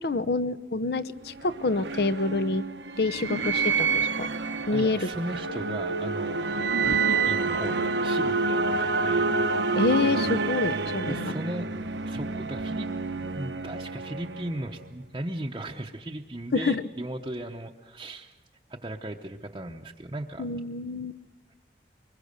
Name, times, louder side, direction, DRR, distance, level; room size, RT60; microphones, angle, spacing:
voice 1, 0.0-2.6 3.0-4.3 4.7-5.1 9.8-11.3 16.5-16.8 20.4-21.1, left 3 dB, 60° left, 12 dB, 0.8 m, -27 dB
sound 1, 1.2-14.9, right 4 dB, 85° right, 1.0 m, -28 dB
voice 2, 4.7-9.7 11.1-11.7 12.0-18.4 18.7-20.5, right 1 dB, 25° right, 0 dB, 0.8 m, -37 dB
24.0 x 22.0 x 6.6 m, 1.3 s
head